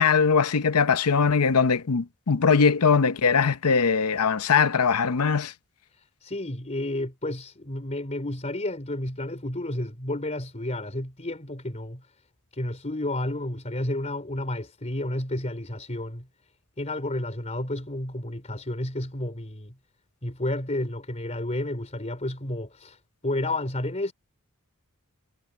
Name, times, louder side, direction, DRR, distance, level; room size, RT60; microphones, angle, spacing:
voice 1, 0.0-5.5, left 5 dB, 90° left, 0.8 m, -21 dB
voice 2, 6.0-12.1 12.5-16.3 16.8-19.7 20.2-24.1, left 1 dB, 30° left, 3.6 m, -31 dB
head